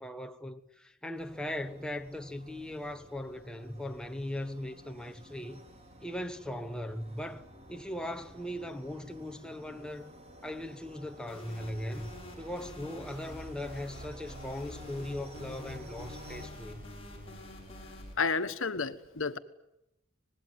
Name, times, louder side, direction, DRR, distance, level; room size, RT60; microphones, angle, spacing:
voice 1, 0.0-5.6 6.0-10.1 10.4-16.8, left 1 dB, 5° left, 1.2 m, -39 dB
sound 1, 1.1-16.5, equal, 30° right, 4.5 m, -52 dB
sound 2, 11.3-18.1, left 1 dB, 30° left, 6.4 m, -46 dB
voice 2, 18.2-19.4, left 4 dB, 75° left, 1.4 m, -31 dB
25.5 x 20.5 x 9.4 m
head